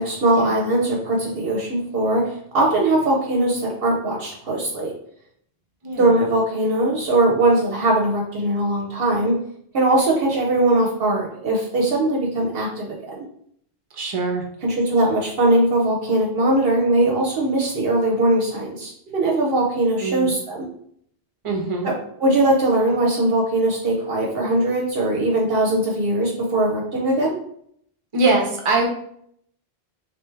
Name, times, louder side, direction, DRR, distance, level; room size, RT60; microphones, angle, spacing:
voice 1, 0.0-4.9 6.0-9.4 9.7-12.9 14.6-20.7 21.8-21.9 22.2-27.3, right 1 dB, 70° right, -2 dB, 0.8 m, -20 dB
voice 2, 5.8-6.1 13.9-14.4 20.0-20.3 21.4-21.9 28.1-28.9, right 3 dB, 35° right, 1 dB, 0.7 m, -22 dB
3.3 x 2.7 x 3.2 m, 0.67 s
omnidirectional pair, 1.0 m